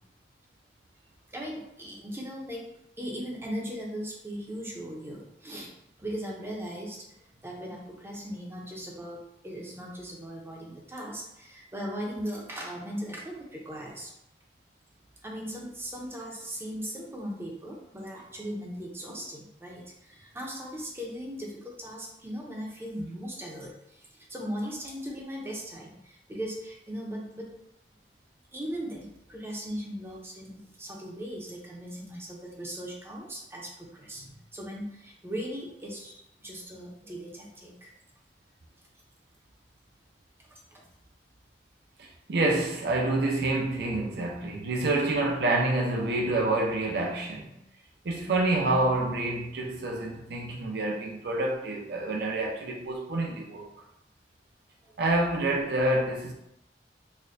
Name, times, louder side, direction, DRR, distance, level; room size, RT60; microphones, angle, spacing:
voice 1, 1.3-2.7 3.0-5.7 6.0-9.2 9.4-14.1 15.2-27.5 28.5-37.9 40.7-40.9 54.8-55.0, equal, 15° right, 0.6 m, -38 dB
voice 2, 42.0-47.6 48.0-53.7 55.0-56.3, right 2 dB, 60° right, 0.5 m, -27 dB
4.1 x 2.2 x 2.6 m
head